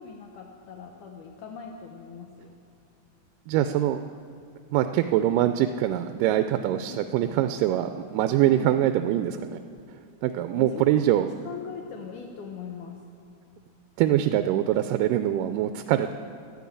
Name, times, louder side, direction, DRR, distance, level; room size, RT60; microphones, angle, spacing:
voice 1, 0.0-2.6 6.9-7.0 8.5-8.7 10.5-13.0, left 6 dB, 75° left, 1 dB, 2.3 m, -41 dB
voice 2, 3.5-4.0 4.7-9.6 10.2-11.3 14.0-16.1, right 12 dB, 85° right, 9 dB, 2.1 m, -24 dB
12.0 x 12.0 x 8.6 m, 2.5 s
omnidirectional pair, 3.8 m